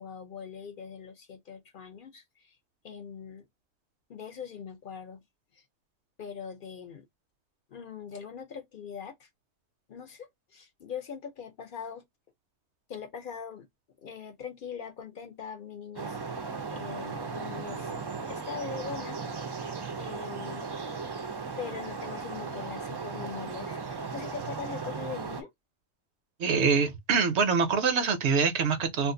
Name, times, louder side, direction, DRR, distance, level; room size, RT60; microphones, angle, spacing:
voice 1, 0.0-2.6 2.8-3.5 4.1-5.2 5.5-5.6 6.2-7.1 7.7-9.3 9.9-12.0 12.9-13.7 14.0-17.9 18.2-19.2 19.5-20.7 21.6-25.5, left 6 dB, 55° left, 0.7 m, -42 dB
sound 1, 16.0-25.4, right 4 dB, 40° right, 0.3 m, -36 dB
voice 2, 26.4-29.1, right 5 dB, 75° right, 1.0 m, -25 dB
2.5 x 2.4 x 3.6 m
omnidirectional pair, 1.1 m